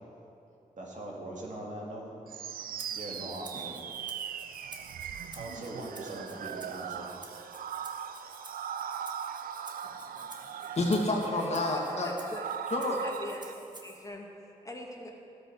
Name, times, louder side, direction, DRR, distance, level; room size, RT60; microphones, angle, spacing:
voice 1, 0.8-2.1 2.9-3.8 5.3-7.1, right 1 dB, 60° right, -2 dB, 2.6 m, -41 dB
sound 1, 2.3-13.5, right 8 dB, 85° right, 0.5 m, -39 dB
Rattle (instrument), 2.8-14.1, right 2 dB, 30° right, 1.7 m, -52 dB
voice 2, 10.2-12.1 12.7-13.0, left 2 dB, 50° left, -1 dB, 2.5 m, -30 dB
voice 3, 11.7-12.4 13.0-15.2, left 1 dB, 20° left, 0 dB, 2.1 m, -43 dB
12.5 x 8.0 x 6.5 m, 2.7 s
cardioid pair, 50°, 14 cm